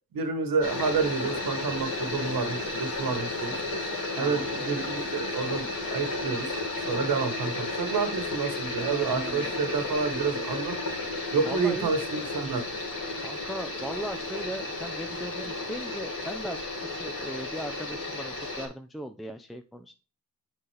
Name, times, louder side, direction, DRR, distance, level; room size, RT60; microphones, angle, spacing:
voice 1, 0.1-3.6 4.2-5.6 5.9-6.5 6.9-10.7 11.3-12.6, right 5 dB, 70° right, 8 dB, 1.3 m, -29 dB
sound 1, 0.6-18.7, left 2 dB, 65° left, 2.6 m, -33 dB
voice 2, 8.8-9.5 11.4-11.9 13.2-19.9, right 1 dB, ahead, 7 dB, 0.5 m, -38 dB
7.3 x 4.1 x 3.3 m, 0.33 s
cardioid pair, 75°, 35 cm